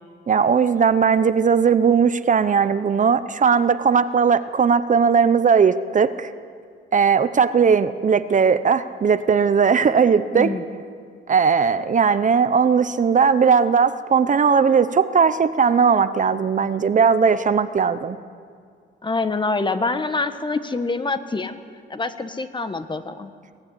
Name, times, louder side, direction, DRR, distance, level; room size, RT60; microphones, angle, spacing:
voice 1, 0.3-6.3 6.9-10.5 11.3-18.2, right 6 dB, 40° right, 12 dB, 0.9 m, -18 dB
voice 2, 10.3-10.6 19.0-21.6 21.9-23.3, left 3 dB, 25° left, 9 dB, 1.4 m, -25 dB
23.0 x 14.0 x 10.0 m, 2.2 s
cardioid pair, 90°, 20 cm